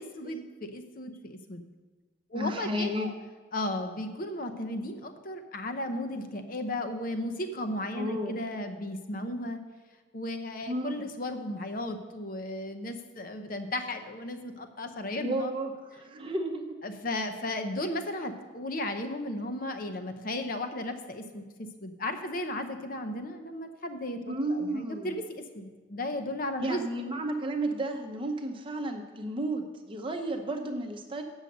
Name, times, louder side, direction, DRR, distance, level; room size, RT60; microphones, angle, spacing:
voice 1, 0.0-1.6 2.3-3.1 3.5-9.6 10.1-15.5 16.8-26.8, left 1 dB, 45° left, 7 dB, 0.7 m, -35 dB
voice 2, 2.3-3.1 7.9-8.4 10.7-10.9 15.2-16.8 24.3-25.2 26.6-31.2, right 1 dB, 25° right, 4 dB, 0.8 m, -32 dB
8.1 x 6.4 x 6.6 m, 1.4 s
head